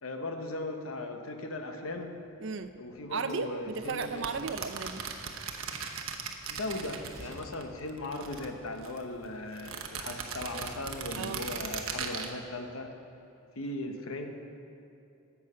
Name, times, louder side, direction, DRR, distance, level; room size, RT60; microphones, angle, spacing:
voice 1, 0.0-2.2 2.8-4.5 6.5-12.9 13.6-14.3, left 2 dB, 80° left, 5 dB, 1.0 m, -38 dB
Train, 1.9-9.6, right 1 dB, 30° right, 1.5 m, -58 dB
voice 2, 2.4-2.7 3.1-5.0 11.2-11.5, right 4 dB, 60° right, 10 dB, 0.5 m, -35 dB
sound 1, 3.8-7.6 7.9-9.0 9.5-12.3, right 6 dB, 75° right, 0.9 m, -38 dB
13.5 x 7.3 x 5.5 m, 2.8 s
head